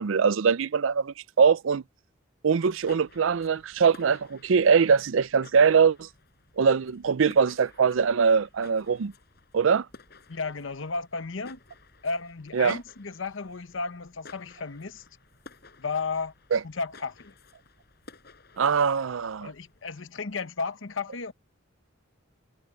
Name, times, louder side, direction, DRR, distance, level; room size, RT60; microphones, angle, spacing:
voice 1, 0.0-1.8 2.4-6.1 6.6-9.1 9.5-9.9 12.5-12.8 16.5-16.6 18.6-19.5, right 6 dB, 75° right, 0.5 m, -22 dB
sound 1, 2.6-20.0, left 3 dB, 55° left, 6.7 m, -54 dB
voice 2, 10.3-11.6 12.0-15.0 15.8-16.3 16.6-17.3 19.4-21.3, left 4 dB, 75° left, 1.0 m, -33 dB
head